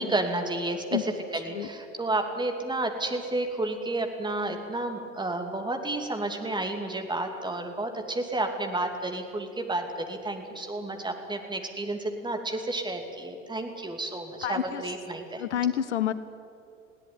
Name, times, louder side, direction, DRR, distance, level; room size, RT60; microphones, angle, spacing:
voice 1, 0.0-15.4, right 2 dB, 10° right, 5 dB, 2.8 m, -31 dB
voice 2, 14.4-14.8 15.4-16.1, left 10 dB, 65° left, 15 dB, 0.9 m, -28 dB
20.5 x 17.0 x 9.5 m, 2.4 s
figure-of-eight pair, 75°, 37 cm